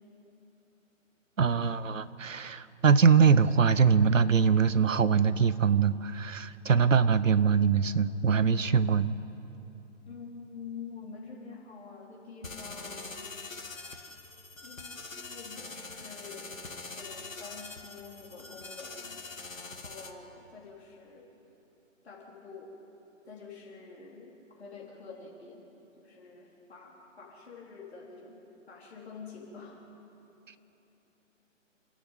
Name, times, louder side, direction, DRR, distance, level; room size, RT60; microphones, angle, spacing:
voice 1, 1.4-9.1, right 6 dB, 70° right, 15 dB, 1.0 m, -23 dB
voice 2, 10.1-13.3 14.6-14.9 15.3-16.5 16.9-19.2 19.5-21.3 22.0-22.7 23.3-25.7 26.0-28.4 28.7-29.8, left 5 dB, 55° left, -4 dB, 3.8 m, -47 dB
sound 1, 12.4-20.1, left 3 dB, 80° left, 2.3 m, -43 dB
28.0 x 10.5 x 9.1 m, 3.0 s
figure-of-eight pair, 150°, 39 cm